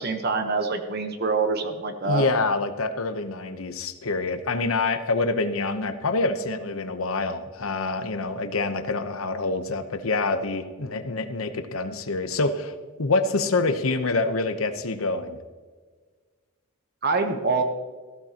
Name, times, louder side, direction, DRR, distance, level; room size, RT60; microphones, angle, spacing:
voice 1, 0.0-2.2 17.0-17.6, right 4 dB, 45° right, 7 dB, 1.0 m, -25 dB
voice 2, 2.0-15.4, left 3 dB, 75° left, 9 dB, 0.9 m, -26 dB
15.0 x 13.0 x 2.9 m, 1.5 s
head